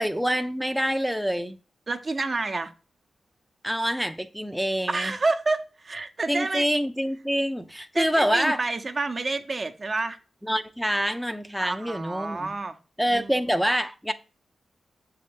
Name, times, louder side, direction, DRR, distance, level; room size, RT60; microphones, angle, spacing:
voice 1, 0.0-1.6 3.6-5.1 6.3-8.6 10.4-12.5 13.0-14.1, equal, ahead, 0.5 m, -26 dB
voice 2, 1.9-2.7 4.9-6.7 7.9-10.2 11.6-12.8 13.1-13.3, right 3 dB, 45° right, 0.7 m, -29 dB
6.8 x 3.8 x 3.6 m
supercardioid pair, 45°, 0 cm